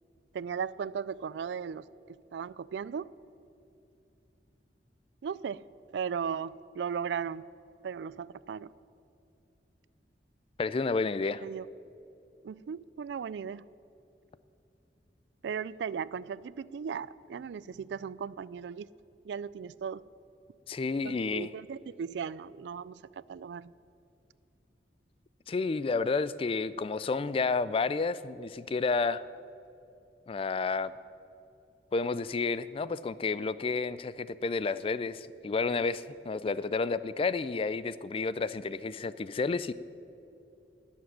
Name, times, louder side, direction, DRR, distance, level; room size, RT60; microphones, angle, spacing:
voice 1, 0.3-1.9 2.3-3.1 5.2-5.6 5.9-7.5 7.8-8.7 11.4-11.7 12.4-13.7 15.4-18.9 19.2-20.0 21.0-23.7, right 7 dB, 70° right, 20 dB, 0.3 m, -36 dB
voice 2, 10.6-11.4 20.7-21.5 25.5-29.2 30.3-30.9 31.9-39.7, left 4 dB, 30° left, 16 dB, 0.3 m, -30 dB
12.0 x 7.3 x 10.0 m, 2.8 s
head